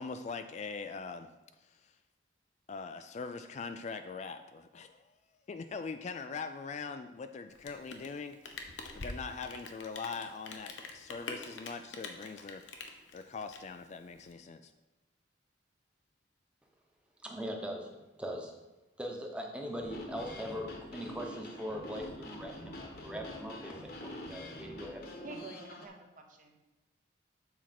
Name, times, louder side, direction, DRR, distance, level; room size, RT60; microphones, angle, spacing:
voice 1, 0.0-1.3 1.6-2.0 2.7-5.1 5.5-12.6 13.1-14.7, left 4 dB, 35° left, 9 dB, 0.3 m, -42 dB
Rain, 7.5-14.3, left 3 dB, 75° left, 0.9 m, -45 dB
voice 2, 17.2-18.5 19.0-25.0, equal, 5° right, 0 dB, 0.9 m, -41 dB
sound 1, 19.8-25.9, left 1 dB, 50° left, 1.1 m, -45 dB
voice 3, 25.2-26.6, right 3 dB, 45° right, 4 dB, 0.8 m, -48 dB
7.2 x 4.3 x 5.9 m, 1.0 s
head